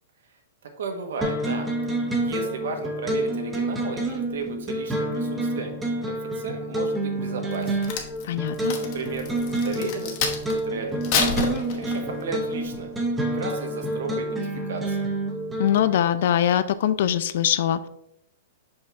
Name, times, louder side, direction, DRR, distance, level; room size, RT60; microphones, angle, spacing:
voice 1, 0.8-5.7 6.1-8.0 8.8-9.3 9.6-11.4 11.7-12.9 13.3-15.1, right 4 dB, 75° right, 4 dB, 1.2 m, -34 dB
sound 1, 1.2-16.0, right 1 dB, 10° right, 0.7 m, -28 dB
Crack, 7.5-10.6 11.0-12.2 12.7-13.0, left 6 dB, 40° left, 1.0 m, -28 dB
voice 2, 8.2-8.8 15.6-17.9, left 10 dB, 60° left, 13 dB, 0.4 m, -22 dB
5.6 x 5.3 x 3.5 m, 0.78 s
hypercardioid pair, 160°, 0 cm